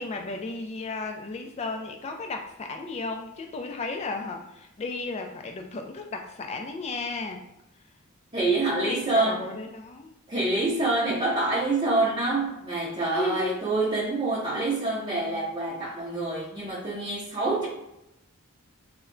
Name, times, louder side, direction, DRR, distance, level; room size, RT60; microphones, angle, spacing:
voice 1, 0.0-7.4 8.8-10.1 13.1-13.6, left 3 dB, 30° left, 4 dB, 0.3 m, -34 dB
voice 2, 8.3-9.4 10.3-17.6, right 2 dB, 25° right, -7 dB, 0.5 m, -26 dB
2.1 x 2.1 x 3.6 m, 0.88 s
head